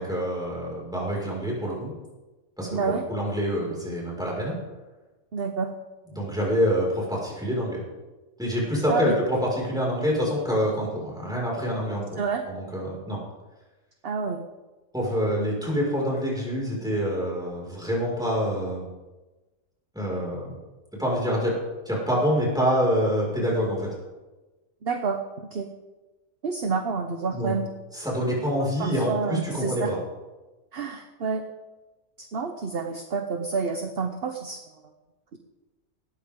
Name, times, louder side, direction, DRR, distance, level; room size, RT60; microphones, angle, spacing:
voice 1, 0.0-1.9 2.6-4.6 6.1-7.8 8.4-12.2 12.5-13.2 14.9-18.9 19.9-20.5 21.0-21.6 21.9-23.9 27.3-27.5 27.9-30.0, equal, 5° right, -4 dB, 5.5 m, -26 dB
voice 2, 2.7-3.0 5.3-5.7 8.9-9.2 12.2-12.4 14.0-14.4 24.8-25.7 26.4-27.7 28.6-29.9 30.7-31.4 32.2-34.6, right 5 dB, 50° right, 5 dB, 1.1 m, -29 dB
18.5 x 13.5 x 3.8 m, 1.2 s
omnidirectional pair, 1.4 m